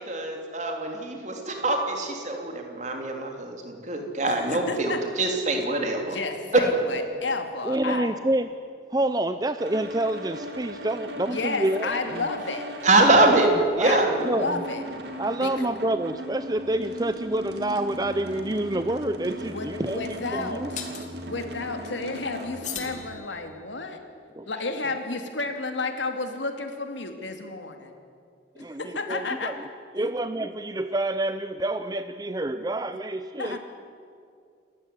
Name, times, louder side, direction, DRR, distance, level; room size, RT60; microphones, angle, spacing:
voice 1, 0.0-6.2 12.8-13.5 13.8-14.1, right 2 dB, 40° right, 3 dB, 3.3 m, -24 dB
voice 2, 4.2-5.0 6.1-8.1 11.3-12.7 12.9-13.4 13.8-14.8 15.4-15.7 19.5-20.8 21.2-24.0 24.5-27.9 28.6-29.5 30.0-30.1 33.4-33.6, left 3 dB, 75° left, 6 dB, 2.7 m, -32 dB
voice 3, 7.6-8.5 8.9-12.2 13.3-14.6 15.2-20.7 24.3-24.5 28.6-29.7 29.9-33.6, right 1 dB, 20° right, 10 dB, 0.5 m, -28 dB
sound 1, 9.6-23.0, equal, 60° right, 2.4 m, -38 dB
sound 2, 18.8-18.9 20.8-21.1 22.6-23.7, left 8 dB, 40° left, 2.4 m, -38 dB
28.5 x 14.5 x 9.9 m, 2.3 s
head